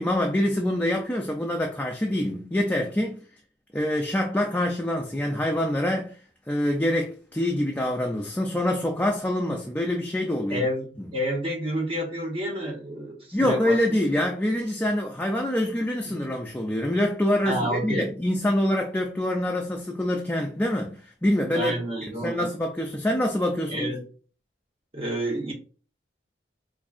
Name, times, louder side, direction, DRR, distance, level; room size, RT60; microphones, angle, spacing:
voice 1, 0.0-3.2 3.7-6.1 6.5-10.6 11.0-11.1 13.3-21.7 22.2-23.9, left 1 dB, 10° left, 0.3 m, -25 dB
voice 2, 10.5-14.0 16.1-16.2 17.4-18.1 21.5-22.5 23.7-24.0 24.9-25.5, equal, 30° right, 1.0 m, -29 dB
4.5 x 2.6 x 2.4 m
head